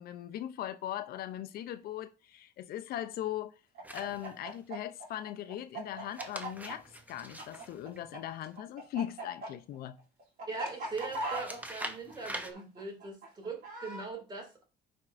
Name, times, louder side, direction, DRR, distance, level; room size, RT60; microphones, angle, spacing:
voice 1, 0.0-3.5 3.9-10.0, left 11 dB, 65° left, 0.4 m, -39 dB
Chicken rooster, 3.7-8.2 8.4-14.1, right 2 dB, 60° right, 2.6 m, -39 dB
sound 1, 3.8-4.6 5.9-8.5 10.9-12.5, right 1 dB, 10° right, 0.8 m, -44 dB
voice 2, 10.4-14.6, right 3 dB, 25° right, 2.3 m, -41 dB
9.6 x 4.3 x 2.5 m
cardioid pair, 110°, 17 cm